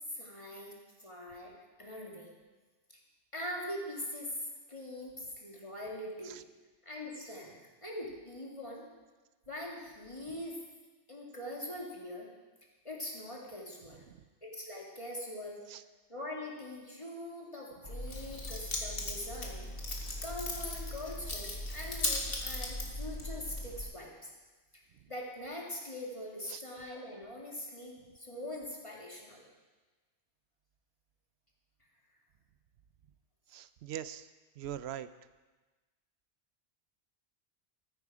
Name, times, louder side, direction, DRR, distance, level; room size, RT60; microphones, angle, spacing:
voice 1, 0.1-0.7 1.0-2.3 3.3-4.3 4.7-6.4 6.8-8.8 9.5-10.6 11.1-12.3 12.8-14.0 14.4-15.6 16.1-19.7 20.2-24.3 25.1-29.4, left 1 dB, 30° left, -2 dB, 2.2 m, -42 dB
Keys jangling, 17.8-23.8, left 2 dB, 60° left, 1.9 m, -37 dB
voice 2, 33.5-34.3 34.6-35.1, right 10 dB, 75° right, 14 dB, 0.8 m, -42 dB
14.0 x 9.2 x 4.8 m, 1.3 s
omnidirectional pair, 1.1 m